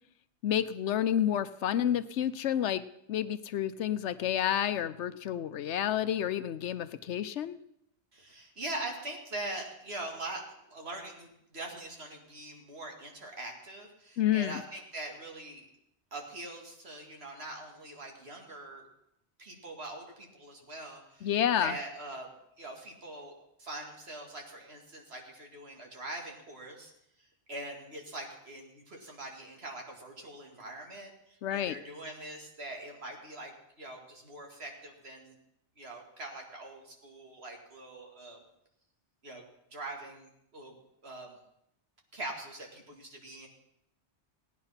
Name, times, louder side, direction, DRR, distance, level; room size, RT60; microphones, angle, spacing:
voice 1, 0.4-2.8 3.1-7.6 14.2-14.6 21.2-21.7 31.4-31.7, left 10 dB, 90° left, 13 dB, 1.0 m, -29 dB
voice 2, 8.1-15.6 16.1-18.9 19.4-22.3 22.6-26.9 27.2-33.5 33.8-35.4 35.8-38.4 39.2-40.8 41.0-41.4 42.1-43.5, right 2 dB, 65° right, 1 dB, 2.5 m, -43 dB
17.0 x 9.6 x 5.7 m, 0.79 s
omnidirectional pair, 1.1 m